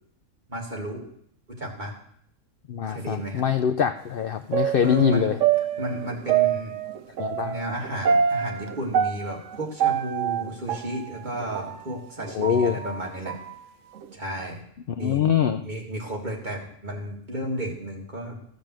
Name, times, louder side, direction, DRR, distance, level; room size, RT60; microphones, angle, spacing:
voice 1, 0.5-1.1 1.5-2.0 2.9-3.4 4.8-5.3 5.8-6.7 7.4-13.3 14.1-14.6 15.0-15.3 15.6-18.4, right 1 dB, 35° right, -1 dB, 2.2 m, -32 dB
voice 2, 2.7-5.4 7.2-7.5 12.3-12.8 15.0-15.6, left 8 dB, 60° left, 8 dB, 0.6 m, -23 dB
sound 1, 4.5-11.8 12.2-13.5 14.0-14.1, right 8 dB, 75° right, 1.0 m, -26 dB
14.0 x 5.2 x 7.5 m, 0.67 s
omnidirectional pair, 1.3 m